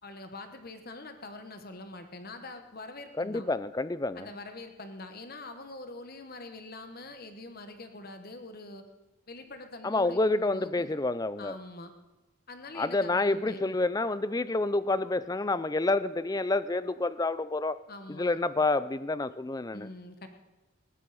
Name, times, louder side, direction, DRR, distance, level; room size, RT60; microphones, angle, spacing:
voice 1, 0.0-3.5 4.1-8.8 9.3-10.9 11.4-11.9 12.5-13.8 17.9-18.4 19.7-20.3, left 2 dB, 45° left, 7 dB, 1.3 m, -44 dB
voice 2, 3.2-4.3 9.8-11.6 12.8-17.8 18.1-19.9, left 2 dB, 15° left, 15 dB, 0.4 m, -28 dB
19.5 x 15.0 x 4.2 m, 1.1 s
head